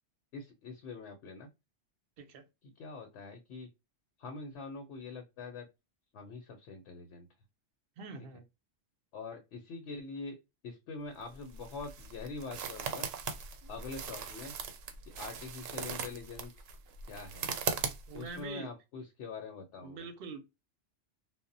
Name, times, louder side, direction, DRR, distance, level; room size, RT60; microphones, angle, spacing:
voice 1, 0.3-1.5 2.8-3.7 4.2-5.7 6.1-7.3 9.1-10.4 10.6-13.1 13.7-14.5 15.1-16.5 17.1-17.5 18.1-20.1, left 4 dB, 70° left, 0.8 m, -44 dB
voice 2, 8.0-8.5 18.1-18.7 19.8-20.4, right 4 dB, 60° right, 0.7 m, -44 dB
sound 1, 11.2-18.4, right 6 dB, 85° right, 0.9 m, -39 dB
2.1 x 2.1 x 3.7 m
omnidirectional pair, 1.3 m